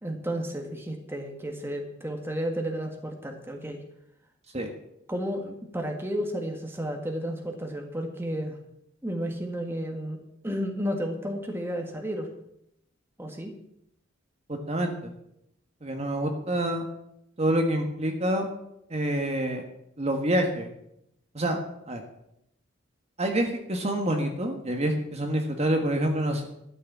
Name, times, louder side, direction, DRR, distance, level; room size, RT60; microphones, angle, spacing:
voice 1, 0.0-3.8 5.1-8.6 9.0-10.2 10.4-12.3 13.2-13.5, equal, 10° right, 3 dB, 1.7 m, -32 dB
voice 2, 14.5-15.2 15.8-16.8 17.4-18.5 18.9-19.6 20.0-20.7 21.3-21.6 21.9-22.0 23.2-26.5, right 1 dB, 35° right, 4 dB, 1.5 m, -27 dB
12.5 x 6.7 x 8.5 m, 0.79 s
head